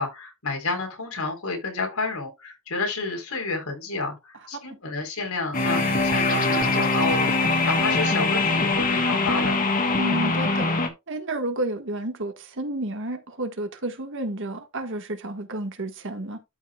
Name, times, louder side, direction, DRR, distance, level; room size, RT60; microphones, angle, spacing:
voice 1, 0.0-9.6, left 3 dB, 85° left, 3.9 m, -30 dB
sound 1, 5.5-10.9, left 3 dB, 40° left, 1.6 m, -22 dB
voice 2, 6.3-6.7 9.9-10.7 11.1-16.4, right 2 dB, 60° right, 1.7 m, -31 dB
13.0 x 5.6 x 2.3 m
head